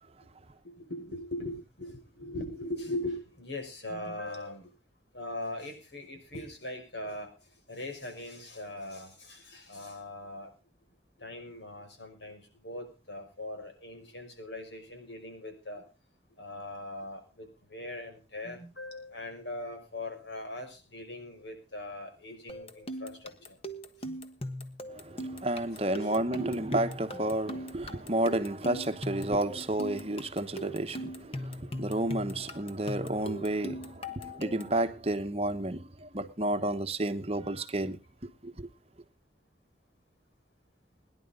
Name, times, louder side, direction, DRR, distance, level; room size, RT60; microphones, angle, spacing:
voice 1, 0.6-4.7 5.1-7.3 7.7-10.5 11.2-15.8 16.4-23.6 24.0-24.1 26.0-26.1, left 1 dB, 80° left, 5.7 m, -40 dB
sound 1, 22.5-34.8, equal, 35° left, 1.2 m, -40 dB
voice 2, 24.9-38.7, right 1 dB, 35° right, 1.0 m, -31 dB
22.0 x 10.5 x 3.8 m
head